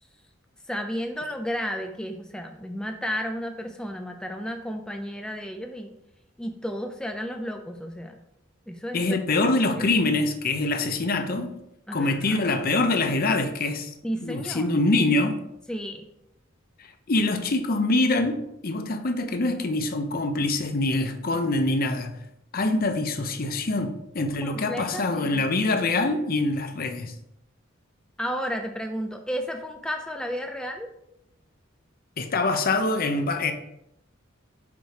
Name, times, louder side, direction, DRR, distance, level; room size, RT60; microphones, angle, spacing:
voice 1, 0.7-5.9 6.4-8.2 8.7-9.0 11.9-12.4 14.0-14.7 15.7-16.0 24.4-25.4 28.2-30.9, equal, 5° left, 0.4 m, -32 dB
voice 2, 8.9-11.5 11.9-13.9 14.2-15.4 16.8-22.1 22.5-27.1 32.2-33.5, left 2 dB, 50° left, 0.7 m, -24 dB
5.2 x 4.5 x 4.9 m
head